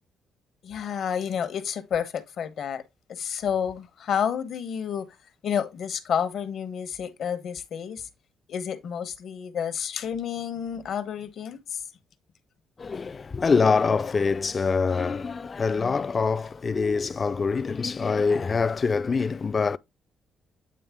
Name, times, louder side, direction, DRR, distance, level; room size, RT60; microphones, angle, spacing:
voice 1, 0.6-2.8 3.1-5.1 5.4-8.1 8.5-11.8, left 8 dB, 65° left, 1.0 m, -30 dB
voice 2, 12.8-19.8, left 5 dB, 35° left, 0.4 m, -24 dB
8.7 x 3.4 x 3.5 m
cardioid pair, 90°, 0 cm